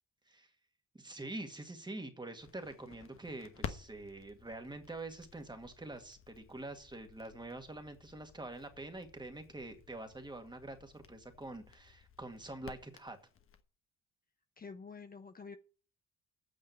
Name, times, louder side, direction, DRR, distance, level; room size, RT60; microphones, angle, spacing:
voice 1, 0.9-13.2, right 2 dB, 15° right, 6 dB, 2.0 m, -46 dB
Crackle, 2.4-13.6, left 7 dB, 45° left, 1.3 m, -52 dB
voice 2, 14.6-15.6, left 5 dB, 30° left, 7 dB, 0.8 m, -48 dB
9.0 x 6.4 x 8.0 m, 0.40 s
cardioid pair, 90°, 30 cm